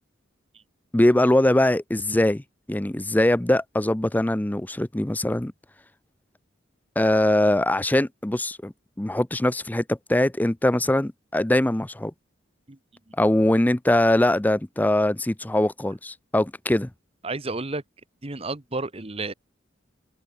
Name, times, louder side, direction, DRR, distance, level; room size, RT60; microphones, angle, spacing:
voice 1, 0.9-2.4 2.7-5.5 7.0-8.7 9.0-12.1 13.2-16.9, left 1 dB, 10° left, 0.5 m, -22 dB
voice 2, 17.2-17.8 18.2-19.3, right 3 dB, 30° right, 1.2 m, -31 dB
head